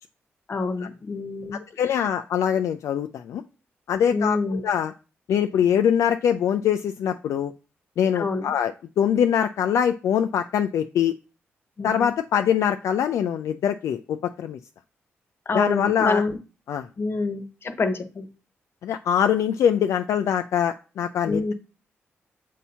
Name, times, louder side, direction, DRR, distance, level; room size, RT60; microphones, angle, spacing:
voice 1, 0.5-1.6 4.1-4.6 8.1-8.5 11.8-12.1 15.5-16.4 17.0-18.3 21.3-21.5, left 3 dB, 45° left, 1.0 m, -26 dB
voice 2, 1.8-3.4 3.9-4.9 5.3-7.5 8.0-11.1 11.8-14.6 15.5-16.2 16.7-16.9 18.8-21.5, left 9 dB, 75° left, 0.3 m, -23 dB
7.2 x 2.8 x 5.5 m
supercardioid pair, 55°, 5 cm